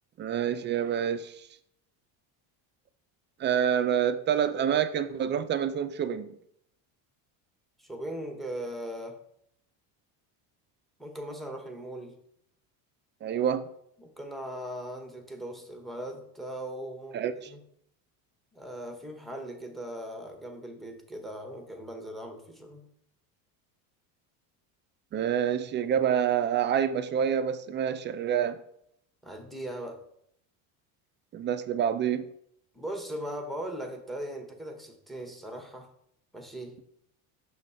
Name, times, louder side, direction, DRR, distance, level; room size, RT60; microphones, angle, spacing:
voice 1, 0.2-1.3 3.4-6.3 13.2-13.6 17.1-17.3 25.1-28.6 31.3-32.2, right 9 dB, 25° right, 0.4 m, -27 dB
voice 2, 7.8-9.2 11.0-12.2 14.0-17.6 18.5-22.9 29.2-30.1 32.7-35.9 36.3-36.8, right 1 dB, ahead, 0.9 m, -39 dB
5.9 x 3.2 x 5.5 m
supercardioid pair, 115°, 44 cm